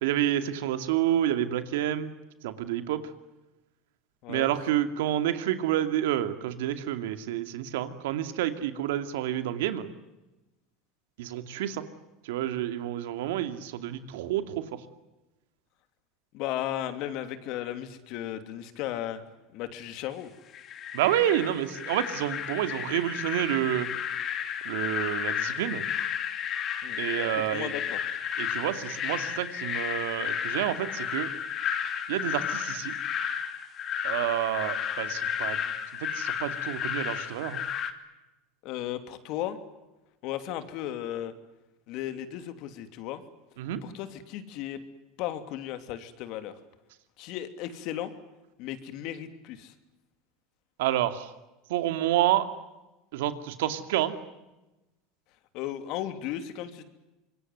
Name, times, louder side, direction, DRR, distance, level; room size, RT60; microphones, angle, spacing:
voice 1, 0.0-2.1 2.4-3.0 4.3-9.9 11.2-11.9 12.2-14.8 20.9-23.9 24.6-25.8 27.0-27.7 28.4-31.3 32.1-32.9 34.0-35.6 36.0-37.6 43.6-43.8 50.8-51.3 51.7-52.5 53.1-54.1, right 12 dB, 85° right, 10 dB, 2.5 m, -29 dB
voice 2, 16.3-19.2 19.5-20.3 26.8-27.0 27.5-28.0 38.6-39.6 40.2-41.3 41.9-43.2 43.8-44.8 45.2-46.6 47.2-48.1 48.6-49.7 55.5-56.8, left 12 dB, 60° left, 10 dB, 3.0 m, -35 dB
sound 1, 20.5-37.9, left 8 dB, 40° left, 2.8 m, -32 dB
26.0 x 22.0 x 9.5 m, 1.0 s
supercardioid pair, 125°, 0 cm